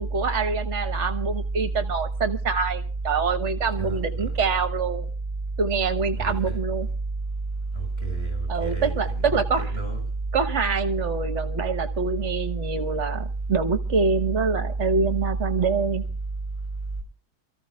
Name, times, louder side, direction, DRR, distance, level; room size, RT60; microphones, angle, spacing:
voice 1, 0.0-5.1 5.6-6.9 8.5-9.6 10.3-16.0, right 5 dB, 50° right, 1.3 m, -25 dB
voice 2, 3.8-4.3 6.1-6.6 7.8-10.0, right 3 dB, 15° left, 6.5 m, -29 dB
28.5 x 14.5 x 2.3 m
omnidirectional pair, 1.7 m